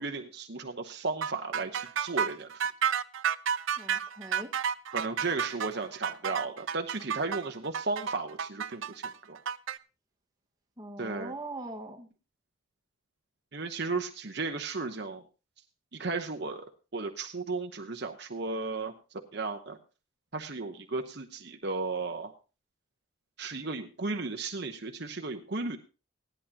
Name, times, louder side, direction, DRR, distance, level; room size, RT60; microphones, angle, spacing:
voice 1, 0.0-2.5 4.9-9.4 11.0-11.3 13.5-15.2 15.9-16.6 16.9-18.9 19.3-19.8 20.3-22.3 23.4-25.8, right 3 dB, 55° right, 4 dB, 0.9 m, -34 dB
sound 1, 1.2-9.8, right 8 dB, 70° right, 0.5 m, -31 dB
voice 2, 3.8-4.5 10.8-12.1, right 2 dB, 20° right, 0 dB, 1.5 m, -41 dB
17.0 x 11.0 x 2.8 m, 0.33 s
head